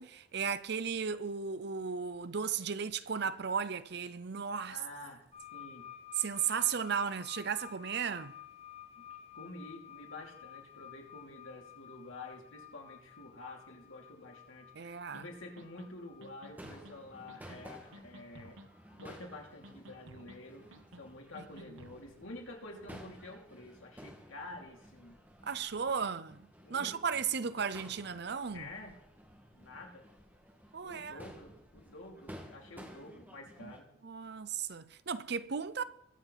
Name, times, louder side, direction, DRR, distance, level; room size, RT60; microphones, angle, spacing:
voice 1, 0.0-4.8 6.2-8.3 14.8-15.3 21.6-21.7 25.4-28.7 30.7-31.2 33.6-33.7 34.0-35.8, right 6 dB, 55° right, 0.6 m, -35 dB
voice 2, 4.7-5.2 5.5-5.9 9.0-9.1 9.3-18.6 18.9-20.7 21.0-25.2 26.6-27.0 28.4-29.0 29.5-30.0 30.8-33.9, left 2 dB, 85° left, 2.9 m, -49 dB
sound 1, 5.3-20.2 21.1-21.2, left 11 dB, 30° left, 1.2 m, -53 dB
sound 2, 15.1-15.2 15.6-15.9 16.2-17.0 17.3-17.6 17.9-18.7 19.0-19.4 19.6-20.4 20.7-21.0 21.3-22.0, right 1 dB, 80° right, 1.2 m, -53 dB
Crowd / Fireworks, 16.5-33.8, equal, 10° right, 1.6 m, -54 dB
22.0 x 7.5 x 4.0 m
head